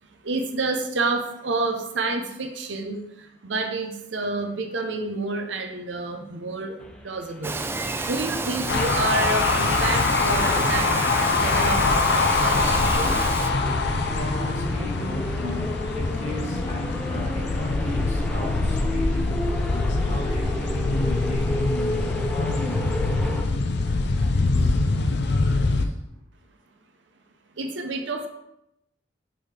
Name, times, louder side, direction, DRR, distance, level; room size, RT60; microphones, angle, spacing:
voice 1, 0.0-7.6 8.0-10.9 11.3-13.2 27.6-28.3, right 3 dB, 70° right, 0.8 m, -29 dB
sound 1, 6.8-23.4, left 1 dB, 5° left, 0.7 m, -34 dB
Bird vocalization bird call bird song, 7.4-13.5, right 3 dB, 15° right, 0.3 m, -30 dB
sound 2, 8.7-25.9, left 3 dB, 65° left, 0.5 m, -24 dB
voice 2, 13.5-26.1, left 2 dB, 40° left, 1.7 m, -39 dB
6.2 x 4.8 x 3.4 m
head